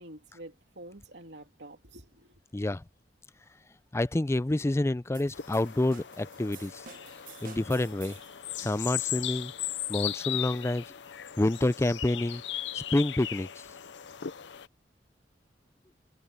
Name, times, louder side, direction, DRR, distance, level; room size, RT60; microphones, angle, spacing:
voice 1, 0.0-2.4, right 1 dB, 75° right, 3.1 m, -48 dB
voice 2, 2.5-2.8 3.9-6.8 7.4-8.2 8.6-9.5 9.9-10.8 11.4-12.4 12.7-13.5, left 1 dB, 15° left, 0.4 m, -28 dB
sound 1, 5.1-8.4, right 7 dB, 50° right, 1.3 m, -51 dB
sound 2, 5.3-14.7, left 11 dB, 85° left, 0.7 m, -37 dB
head